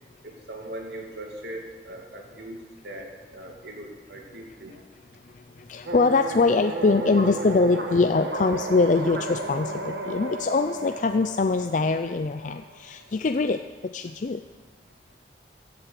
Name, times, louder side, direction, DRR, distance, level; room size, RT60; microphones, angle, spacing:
voice 1, 0.2-4.8, right 1 dB, 70° right, 1 dB, 2.5 m, -40 dB
voice 2, 5.7-13.6 13.9-14.4, left 3 dB, 45° left, 7 dB, 0.4 m, -23 dB
sound 1, 5.9-12.8, right 3 dB, 85° right, 1.6 m, -34 dB
15.5 x 8.0 x 7.7 m, 1.4 s
head